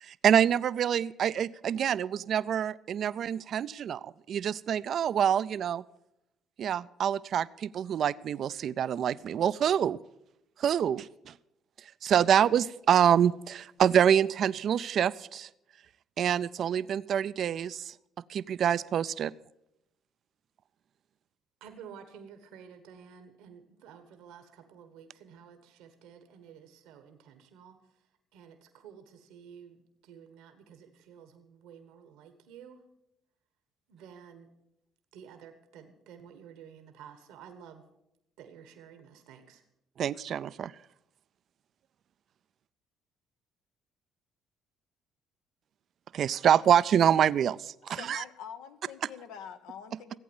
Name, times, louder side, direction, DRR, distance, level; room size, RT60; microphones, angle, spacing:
voice 1, 0.0-5.8 6.6-10.0 10.6-11.3 12.0-15.5 16.2-17.9 18.3-19.3 40.0-40.7 46.1-48.2, right 9 dB, 60° right, 17 dB, 0.4 m, -26 dB
voice 2, 21.6-32.8 33.9-34.5 35.1-37.8 38.4-39.6, right 7 dB, 80° right, 7 dB, 1.3 m, -52 dB
voice 3, 47.9-50.2, left 8 dB, 85° left, 8 dB, 0.9 m, -45 dB
15.0 x 8.5 x 7.2 m, 0.85 s
supercardioid pair, 70°, 0 cm